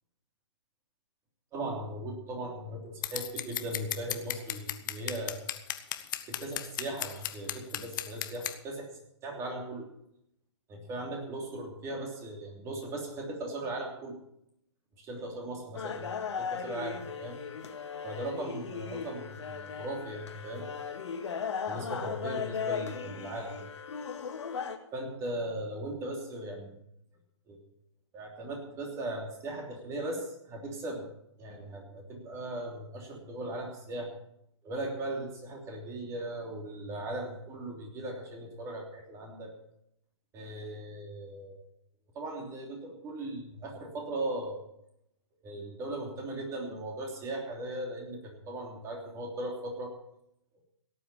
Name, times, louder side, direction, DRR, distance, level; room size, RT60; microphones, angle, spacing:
voice 1, 1.5-5.4 6.3-8.9 9.2-9.9 10.7-14.2 15.0-17.4 18.0-20.6 21.7-23.6 24.9-26.7 27.5-27.6 28.1-31.0 31.4-34.1 34.6-39.5 40.3-41.6 42.1-44.6 45.4-50.0, right 1 dB, 20° right, 1 dB, 3.1 m, -38 dB
Scissors, 3.0-8.6, left 12 dB, 40° left, 1.0 m, -35 dB
sound 1, 15.7-24.8, left 6 dB, 70° left, 2.0 m, -37 dB
17.5 x 8.5 x 6.9 m, 0.78 s
hypercardioid pair, 150°, 15 cm